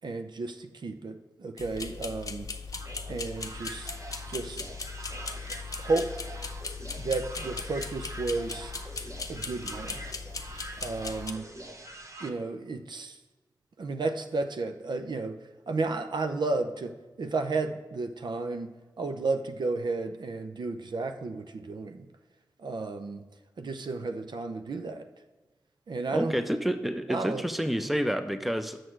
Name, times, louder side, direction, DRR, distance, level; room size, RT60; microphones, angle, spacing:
voice 1, 0.0-2.5 3.1-3.9 4.3-4.6 5.8-6.1 7.0-8.7 9.3-10.0 10.8-11.5 12.2-13.2 13.8-18.7 19.0-22.1 22.6-23.2 23.6-25.1 25.9-26.4 27.1-27.4, right 3 dB, 70° right, 7 dB, 0.6 m, -32 dB
sound 1, 1.6-11.3, left 4 dB, 50° left, 0.7 m, -38 dB
sound 2, 2.7-12.3, right 2 dB, 40° right, 1.0 m, -44 dB
voice 2, 26.1-28.8, equal, ahead, 9 dB, 0.7 m, -29 dB
6.4 x 6.3 x 4.5 m, 1.2 s
cardioid pair, 45°, 8 cm